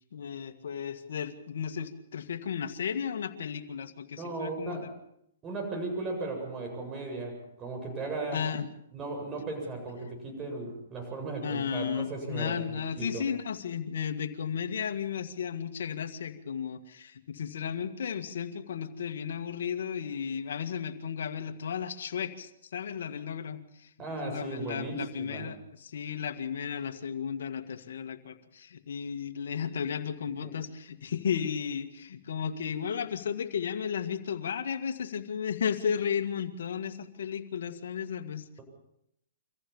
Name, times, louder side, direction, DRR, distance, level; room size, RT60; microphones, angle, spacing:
voice 1, 0.1-4.9 8.3-8.7 11.4-23.9 24.2-38.6, left 7 dB, 70° left, 7 dB, 2.0 m, -34 dB
voice 2, 4.2-4.9 5.4-8.4 8.9-13.2 24.0-25.5 30.4-30.5, right 3 dB, 20° right, 3 dB, 7.9 m, -36 dB
25.0 x 15.0 x 7.2 m, 0.78 s
hypercardioid pair, 135°, 0 cm